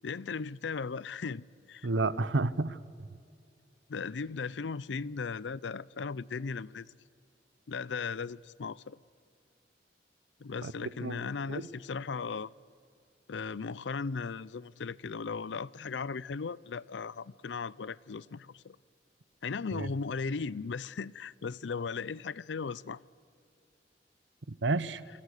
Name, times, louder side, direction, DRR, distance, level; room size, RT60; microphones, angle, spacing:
voice 1, 0.0-1.9 3.9-6.9 7.7-9.0 10.4-12.5 13.3-18.8 19.4-23.0, left 5 dB, 75° left, 0.5 m, -37 dB
voice 2, 1.8-2.8 10.6-11.7 19.8-19.9 24.5-25.0, right 3 dB, 80° right, 0.9 m, -31 dB
27.5 x 25.0 x 6.6 m
head